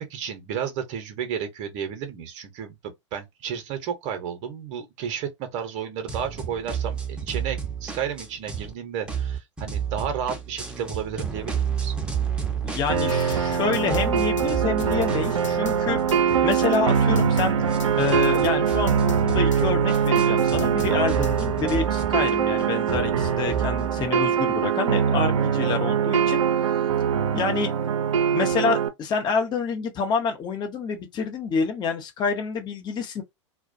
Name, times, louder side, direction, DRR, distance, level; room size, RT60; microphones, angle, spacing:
voice 1, 0.0-11.9, right 8 dB, 45° right, 0.7 m, -32 dB
sound 1, 6.1-8.7 9.0-13.6 13.9-24.1, right 7 dB, 5° right, 0.7 m, -32 dB
voice 2, 12.6-16.0 16.4-17.6 18.0-26.4 27.3-27.7 28.3-33.2, left 5 dB, 25° left, 0.7 m, -27 dB
sound 2, 12.9-28.9, right 7 dB, 80° right, 0.5 m, -23 dB
sound 3, 13.0-21.6, left 5 dB, 80° left, 0.4 m, -37 dB
2.2 x 2.2 x 2.6 m
hypercardioid pair, 95°, 16 cm